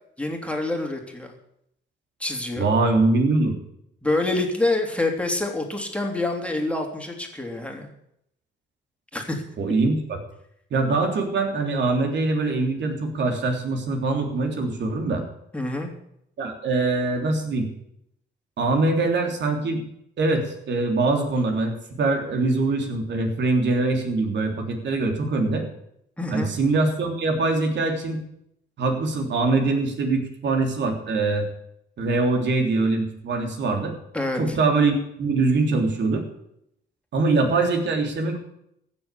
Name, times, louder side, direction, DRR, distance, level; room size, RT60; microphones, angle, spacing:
voice 1, 0.2-1.3 2.2-2.7 4.0-7.9 9.1-9.4 15.5-15.9 26.2-26.5 34.1-34.6, left 2 dB, 5° left, 2 dB, 3.2 m, -26 dB
voice 2, 2.6-3.6 9.6-10.2 10.7-15.2 16.4-17.7 18.6-19.8 20.2-25.6 26.3-28.2 28.8-31.5 32.0-33.9 34.4-36.2 37.1-38.4, right 3 dB, 65° right, 4 dB, 3.4 m, -23 dB
15.5 x 7.4 x 8.5 m, 0.76 s
cardioid pair, 90°, 20 cm